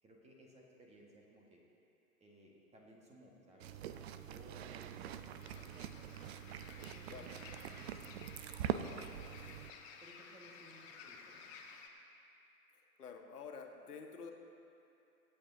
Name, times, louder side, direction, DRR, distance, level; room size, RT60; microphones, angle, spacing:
voice 1, 0.0-1.6 2.2-6.4 6.7-8.3 8.7-9.6 10.0-11.5, right 1 dB, 15° right, -2 dB, 1.6 m, -60 dB
sound 1, 3.6-9.7, right 10 dB, 45° right, 0.6 m, -44 dB
sound 2, 5.4-11.9, left 5 dB, 40° left, 1.3 m, -55 dB
voice 2, 13.0-14.3, left 5 dB, 75° left, 2 dB, 1.4 m, -49 dB
25.0 x 8.5 x 2.8 m, 2.8 s
figure-of-eight pair, 110°, 46 cm